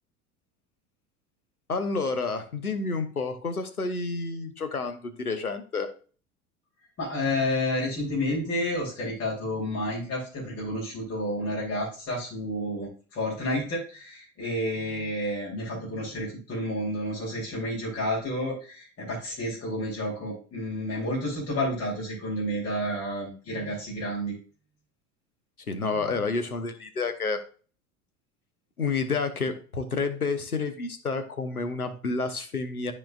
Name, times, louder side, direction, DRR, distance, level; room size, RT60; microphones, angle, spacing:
voice 1, 1.7-5.9 25.7-27.4 28.8-32.9, left 4 dB, 85° left, 8 dB, 1.0 m, -29 dB
voice 2, 7.0-24.3, left 1 dB, 35° left, -5 dB, 3.3 m, -30 dB
12.5 x 4.3 x 2.4 m, 0.39 s
figure-of-eight pair, 75°, 43 cm